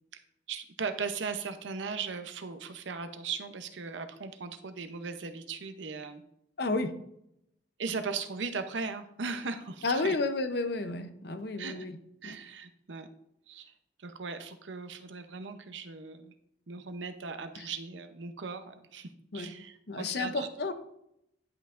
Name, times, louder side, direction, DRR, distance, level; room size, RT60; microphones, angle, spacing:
voice 1, 0.5-6.2 7.8-10.2 11.6-11.8 12.2-13.1 13.5-13.7 14.0-16.3 16.7-20.7, right 5 dB, 85° right, 9 dB, 0.7 m, -38 dB
voice 2, 6.6-6.9 9.8-12.0 12.2-12.4 17.5-17.7 19.3-19.5 19.9-20.7, left 3 dB, 60° left, 9 dB, 0.7 m, -31 dB
10.5 x 5.6 x 2.5 m, 0.78 s
head